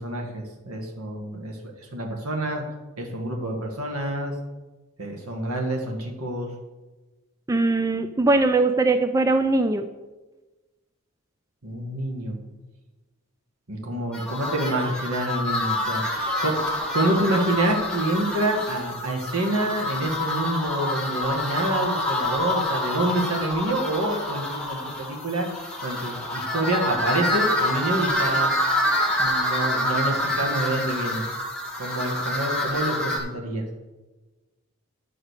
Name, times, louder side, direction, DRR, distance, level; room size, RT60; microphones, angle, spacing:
voice 1, 0.0-2.6 3.0-4.3 5.0-6.5 11.6-12.4 13.7-25.5 25.8-28.5 29.2-31.3 31.8-33.6, right 1 dB, 80° right, 2 dB, 1.8 m, -27 dB
voice 2, 7.5-9.9, right 2 dB, 15° right, 8 dB, 0.3 m, -21 dB
sound 1, 14.1-33.2, left 1 dB, 5° left, 1.3 m, -27 dB
9.9 x 5.1 x 6.5 m, 1.2 s
head